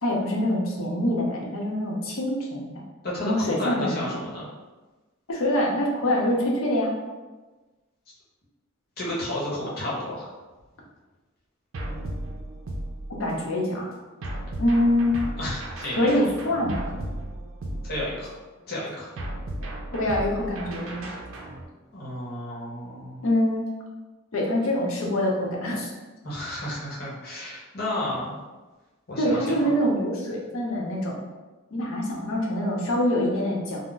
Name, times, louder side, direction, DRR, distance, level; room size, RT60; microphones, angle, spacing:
voice 1, 0.0-2.7 3.2-4.2 5.3-6.9 13.1-13.9 14.6-15.2 16.0-16.9 19.9-21.0 23.2-23.6 24.3-25.9 29.2-31.2 31.7-33.8, left 1 dB, 75° left, -2 dB, 0.7 m, -25 dB
voice 2, 3.0-4.5 9.0-10.3 15.4-16.2 17.8-18.4 18.7-19.1 21.9-23.2 26.2-28.4 29.1-29.8, left 1 dB, 50° left, -6 dB, 1.0 m, -32 dB
sound 1, 11.7-13.5 14.2-18.4 19.2-21.6, right 1 dB, 70° right, 0.5 m, -35 dB
2.4 x 2.0 x 3.7 m, 1.2 s
head